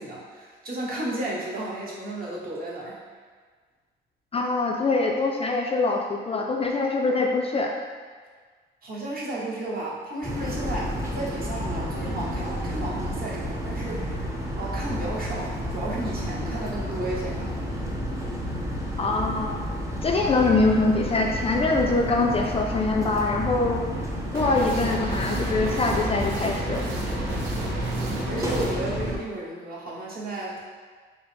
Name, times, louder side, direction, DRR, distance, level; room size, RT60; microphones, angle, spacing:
voice 1, 0.0-3.0 8.8-14.3 14.6-17.5 27.9-30.6, right 1 dB, 50° right, -4 dB, 1.0 m, -33 dB
voice 2, 4.3-7.7 19.0-19.6 20.0-23.8 24.3-26.8, left 3 dB, 30° left, 1 dB, 0.3 m, -24 dB
sound 1, 10.2-29.2, equal, 15° right, 0.6 m, -30 dB
sound 2, 24.3-28.7, right 3 dB, 75° right, 0.7 m, -34 dB
4.6 x 2.0 x 3.3 m, 1.5 s
cardioid pair, 90°, 20 cm